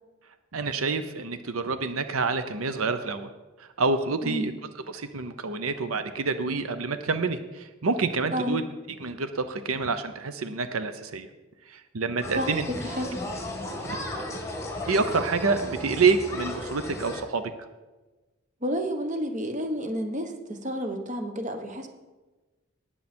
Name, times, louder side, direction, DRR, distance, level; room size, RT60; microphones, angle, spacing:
voice 1, 0.5-3.3 3.6-4.5 4.9-8.6 9.0-11.3 11.7-12.6 13.8-14.2 14.9-17.5, right 4 dB, 85° right, 10 dB, 0.8 m, -27 dB
sound 1, 12.2-17.2, left 1 dB, 15° left, 1.7 m, -35 dB
voice 2, 12.4-13.2 18.6-21.9, equal, 35° right, 5 dB, 1.2 m, -30 dB
19.0 x 7.3 x 4.4 m, 1.2 s
head